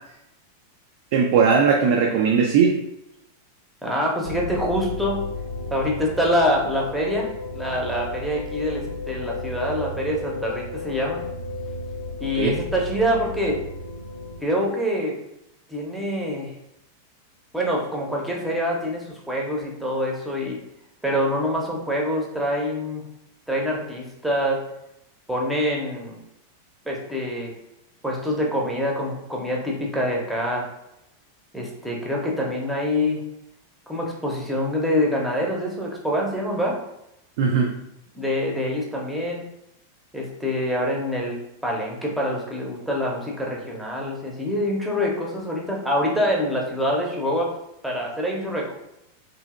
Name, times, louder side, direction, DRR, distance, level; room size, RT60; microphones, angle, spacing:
voice 1, 1.1-2.8 12.3-12.5 37.4-37.7, right 6 dB, 50° right, 1 dB, 0.3 m, -18 dB
voice 2, 3.8-5.2 5.7-11.2 12.2-13.6 14.4-15.1 15.7-16.5 17.5-20.6 21.0-23.0 23.5-24.6 25.3-26.2 26.8-27.5 28.0-30.7 31.5-33.2 33.9-36.8 38.1-39.4 40.1-47.5 47.8-48.7, equal, 5° right, -2 dB, 0.6 m, -25 dB
sound 1, 4.2-14.4, left 3 dB, 80° left, 0.4 m, -33 dB
2.7 x 2.6 x 2.4 m, 0.83 s
figure-of-eight pair, 90°, 0 cm